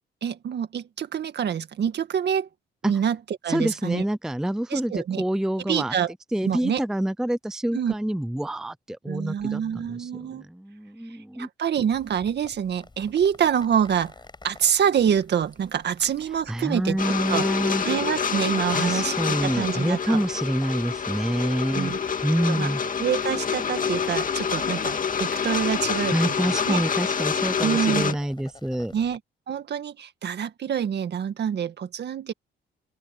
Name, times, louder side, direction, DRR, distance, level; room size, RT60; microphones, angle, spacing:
voice 1, 0.2-2.5 2.8-3.2 3.4-4.0 4.7-5.2 5.7-6.1 6.4-6.8 7.7-7.9 9.1-10.5 11.4-14.1 14.4-17.5 17.8-20.2 21.7-22.0 22.5-22.7 23.0-26.8 27.6-28.1 28.9-29.2 29.5-32.3, right 8 dB, 60° right, 2.0 m, -26 dB
voice 2, 3.5-5.9 6.3-11.5 16.5-17.8 18.7-21.9 22.2-22.8 26.1-28.9, right 1 dB, 5° right, 0.5 m, -27 dB
sound 1, 11.9-29.2, left 3 dB, 20° left, 5.1 m, -49 dB
sound 2, 17.0-28.1, left 6 dB, 40° left, 2.1 m, -27 dB
open air
cardioid pair, 90°, 20 cm